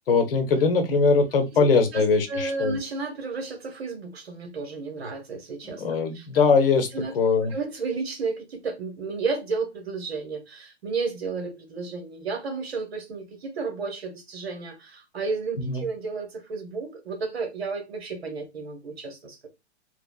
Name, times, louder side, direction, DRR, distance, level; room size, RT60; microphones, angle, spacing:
voice 1, 0.1-2.8 5.6-6.9 7.1-7.5 15.6-15.8, left 4 dB, 55° left, 0.9 m, -21 dB
voice 2, 2.3-5.8 6.1-6.3 6.9-7.1 7.5-19.5, right 4 dB, 60° right, 1.2 m, -32 dB
4.2 x 2.4 x 2.3 m
figure-of-eight pair, 110°, 34 cm